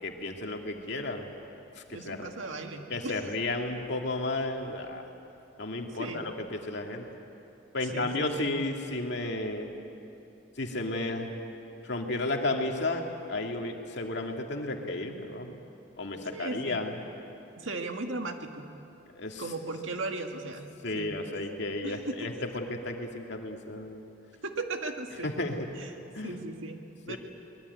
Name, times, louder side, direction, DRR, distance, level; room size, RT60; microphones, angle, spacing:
voice 1, 0.0-1.3 1.8-2.3 2.9-5.0 5.6-7.0 7.7-9.7 10.6-11.3 11.8-13.0 13.3-15.6 16.0-16.9 19.1-19.4 20.8-24.0 25.2-25.7 26.1-26.4 27.1-27.2, left 2 dB, 60° left, 2 dB, 2.3 m, -33 dB
voice 2, 1.9-3.2 6.0-6.2 7.9-8.5 16.3-16.8 17.6-18.7 19.4-20.6 20.9-21.1 21.8-22.2 24.4-25.3 25.8-25.9 26.2-27.2, right 2 dB, 85° right, 4 dB, 1.9 m, -37 dB
23.5 x 20.5 x 9.5 m, 2.8 s
head